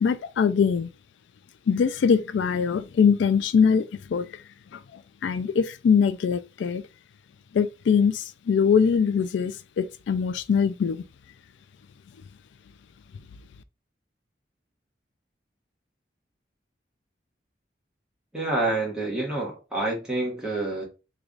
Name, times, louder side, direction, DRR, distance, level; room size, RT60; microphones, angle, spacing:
voice 1, 0.0-0.9 1.7-4.3 4.7-6.8 7.5-11.0, left 6 dB, 80° left, 0.3 m, -22 dB
voice 2, 18.3-20.8, right 2 dB, 5° right, 1.2 m, -27 dB
3.2 x 2.3 x 3.8 m
head